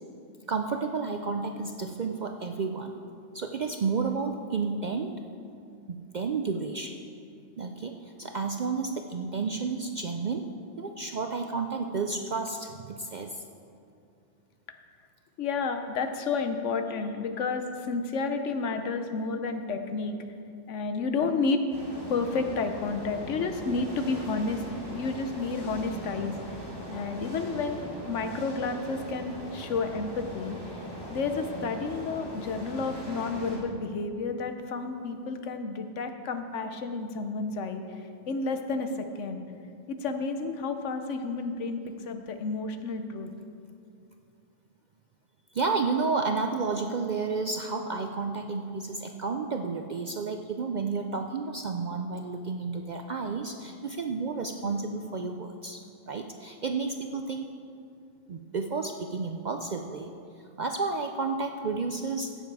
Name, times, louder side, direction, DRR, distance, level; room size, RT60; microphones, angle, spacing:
voice 1, 0.5-3.0 3.3-5.1 5.9-7.0 7.6-10.5 10.8-13.4 45.5-55.8 56.1-57.5 58.3-60.1 60.6-62.3, right 4 dB, 55° right, 4 dB, 0.5 m, -31 dB
voice 2, 15.4-20.2 20.7-21.6 22.1-30.6 31.1-39.4 39.9-43.3, left 4 dB, 75° left, 7 dB, 1.1 m, -31 dB
sound 1, 21.7-33.6, right 1 dB, 20° left, 2.3 m, -40 dB
16.0 x 7.2 x 4.7 m, 2.5 s
omnidirectional pair, 1.3 m